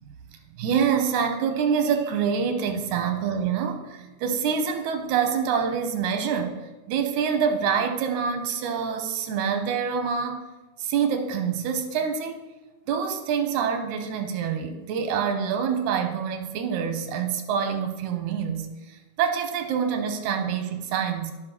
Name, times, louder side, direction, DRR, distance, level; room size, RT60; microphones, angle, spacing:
voice 1, 0.6-6.6 6.9-10.4 10.8-12.5 12.9-21.3, right 7 dB, 85° right, 6 dB, 2.2 m, -26 dB
14.5 x 5.4 x 3.0 m, 1.1 s
omnidirectional pair, 3.4 m